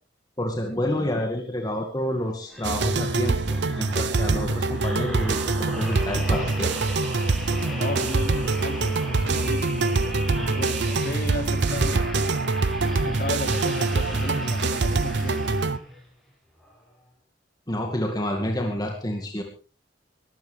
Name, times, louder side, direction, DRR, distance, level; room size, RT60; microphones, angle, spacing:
voice 1, 0.4-6.7 17.7-19.4, left 1 dB, 25° left, 2 dB, 2.2 m, -29 dB
sound 1, 2.5-16.0 16.6-16.8, equal, ahead, 6.5 m, -37 dB
sound 2, 2.6-15.8, right 3 dB, 75° right, 0.8 m, -24 dB
voice 2, 7.7-12.0 12.9-15.5, left 2 dB, 55° left, 4 dB, 3.6 m, -35 dB
22.5 x 15.5 x 3.5 m, 0.36 s
head